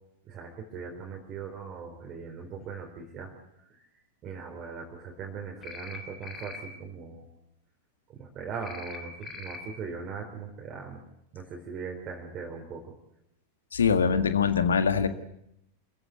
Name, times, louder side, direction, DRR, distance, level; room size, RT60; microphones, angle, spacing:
voice 1, 0.2-3.3 3.8-3.9 4.2-7.3 8.1-11.0 11.3-12.9, right 5 dB, 30° right, 1 dB, 4.2 m, -40 dB
sound 1, 5.6-6.0 6.2-6.6 8.6-9.0 9.2-9.6, left 4 dB, 25° left, 3.6 m, -41 dB
voice 2, 13.7-15.1, left 6 dB, 70° left, 10 dB, 1.8 m, -23 dB
27.5 x 15.0 x 9.3 m, 0.81 s
figure-of-eight pair, 90°, 0 cm